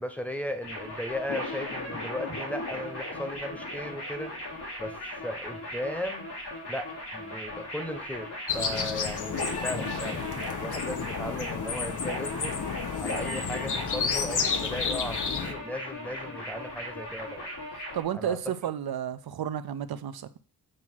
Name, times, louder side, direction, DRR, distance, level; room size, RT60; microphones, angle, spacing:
voice 1, 0.0-4.3 4.8-5.0 5.2-6.3 6.7-8.3 8.5-10.2 10.6-12.6 13.0-17.5 18.1-18.4, left 1 dB, 5° left, 1.0 m, -36 dB
sound 1, 0.6-18.0, left 2 dB, 85° left, 3.0 m, -36 dB
sound 2, 8.5-15.5, left 6 dB, 50° left, 0.9 m, -32 dB
voice 2, 17.9-20.4, right 9 dB, 70° right, 0.7 m, -32 dB
7.6 x 2.9 x 6.1 m
wide cardioid pair, 100°, 38 cm